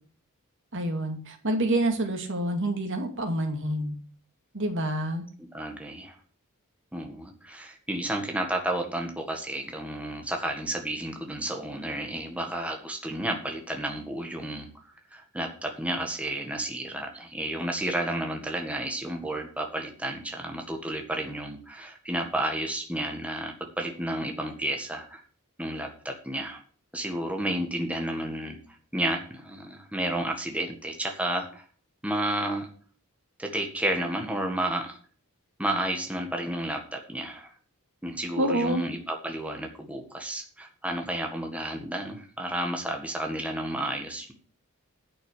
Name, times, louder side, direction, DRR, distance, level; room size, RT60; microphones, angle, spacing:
voice 1, 0.7-3.9 4.5-5.2 38.3-38.8, right 1 dB, 55° right, 5 dB, 2.4 m, -27 dB
voice 2, 5.4-6.2 6.9-25.2 25.6-26.6 26.9-28.6 28.9-31.6 32.0-32.7 33.4-35.0 35.6-37.5 38.0-44.3, right 1 dB, 5° right, 3 dB, 1.7 m, -31 dB
10.0 x 6.4 x 8.1 m, 0.44 s
head